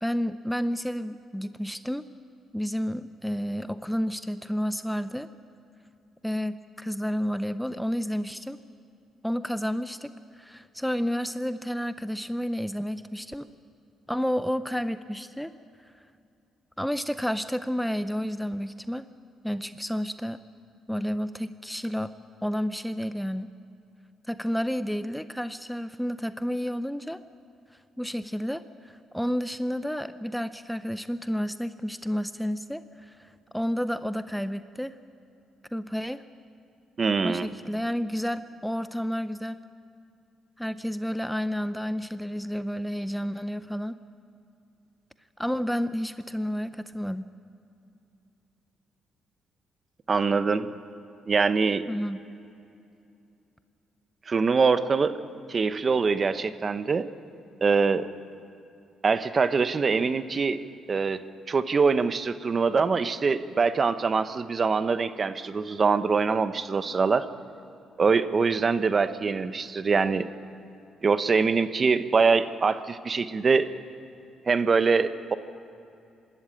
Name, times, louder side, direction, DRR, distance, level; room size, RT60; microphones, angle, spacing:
voice 1, 0.0-2.0 2.5-5.3 6.2-8.6 9.2-13.5 14.1-15.5 16.8-19.0 19.4-20.4 20.9-22.1 22.4-23.5 24.3-27.2 28.0-34.9 35.7-36.2 37.2-39.6 40.6-43.9 45.4-47.3 51.9-52.2, equal, ahead, 12 dB, 0.6 m, -30 dB
voice 2, 37.0-37.5 50.1-50.7 51.3-51.8 54.3-55.1 55.5-57.1 57.6-58.1 59.0-60.6 60.9-61.2 61.5-67.3 68.0-70.3 71.0-73.7 74.5-75.4, right 5 dB, 40° right, 12 dB, 0.9 m, -24 dB
25.5 x 13.0 x 8.6 m, 2.6 s
cardioid pair, 90°, 0 cm